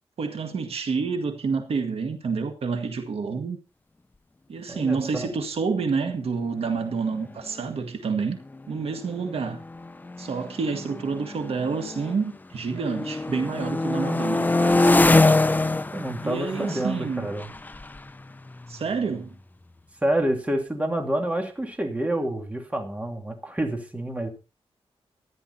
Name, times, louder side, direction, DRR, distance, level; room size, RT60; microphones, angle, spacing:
voice 1, 0.2-3.6 4.5-8.4 8.7-9.6 10.2-14.9 16.2-17.3 18.7-19.3, right 5 dB, 70° right, 1.9 m, -28 dB
voice 2, 4.7-5.3 15.9-17.5 20.0-24.3, right 1 dB, 15° right, 3.0 m, -28 dB
sound 1, 7.0-7.1 7.3-7.7 8.4-12.3 12.7-19.3, left 2 dB, 15° left, 0.6 m, -25 dB
14.0 x 10.5 x 4.3 m
wide cardioid pair, 130°, 10 cm